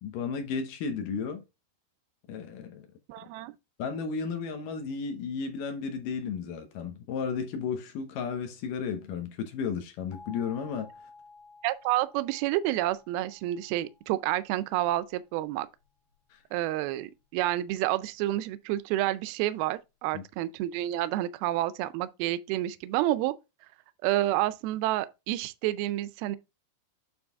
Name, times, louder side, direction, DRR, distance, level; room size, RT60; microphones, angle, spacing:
voice 1, 0.0-1.4 2.3-2.9 3.8-10.9 16.3-16.4 20.1-20.2, left 6 dB, 75° left, 2.1 m, -33 dB
voice 2, 3.1-3.5 11.6-15.7 16.5-23.3 24.0-26.4, right 15 dB, 80° right, 2.3 m, -29 dB
sound 1, 10.1-14.9, left 4 dB, 55° left, 3.4 m, -53 dB
8.8 x 3.9 x 3.5 m
omnidirectional pair, 4.8 m